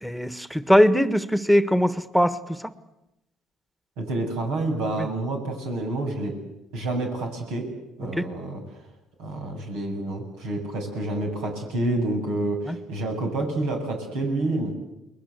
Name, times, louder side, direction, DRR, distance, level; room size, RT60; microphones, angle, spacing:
voice 1, 0.0-2.7 5.0-5.1 8.0-8.2 12.7-12.8, equal, ahead, 13 dB, 1.4 m, -21 dB
voice 2, 4.0-6.3 6.7-7.6 8.0-8.6 9.2-14.7, right 2 dB, 85° right, 2 dB, 7.8 m, -28 dB
30.0 x 21.0 x 8.1 m, 0.91 s
supercardioid pair, 85°, 0 cm